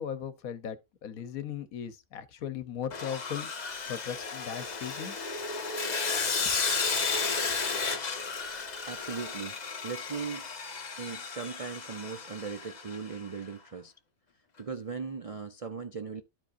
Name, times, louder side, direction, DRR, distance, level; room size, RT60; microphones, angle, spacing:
voice 1, 0.0-3.5 3.9-5.2, left 8 dB, 75° left, 1.3 m, -37 dB
Sawing, 2.9-13.2, left 4 dB, 35° left, 0.9 m, -33 dB
voice 2, 8.9-9.6 9.8-10.4 11.0-13.9 14.6-16.2, right 5 dB, 55° right, 0.4 m, -38 dB
12.5 x 5.0 x 2.6 m
omnidirectional pair, 1.5 m